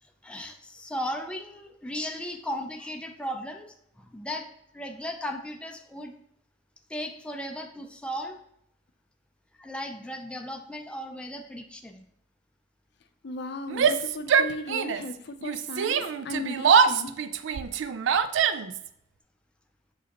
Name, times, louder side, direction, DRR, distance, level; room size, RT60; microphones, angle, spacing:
voice 1, 0.0-6.1 6.9-8.4 9.6-12.0, equal, 5° left, 3 dB, 0.4 m, -36 dB
voice 2, 13.2-17.2, left 2 dB, 60° left, 8 dB, 0.5 m, -36 dB
Yell, 13.7-15.1 15.4-18.9, right 6 dB, 75° right, 0.3 m, -24 dB
6.8 x 4.9 x 2.9 m, 0.75 s
head